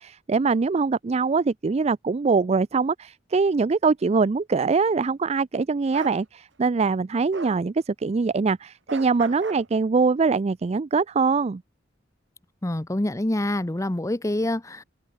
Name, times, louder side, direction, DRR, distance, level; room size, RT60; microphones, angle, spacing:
voice 1, 0.0-11.6, right 4 dB, 35° right, 0.4 m, -23 dB
Bark, 5.9-6.2 7.3-7.6 8.9-9.7, right 3 dB, 80° right, 4.7 m, -37 dB
voice 2, 12.6-14.8, left 1 dB, 15° left, 0.8 m, -26 dB
head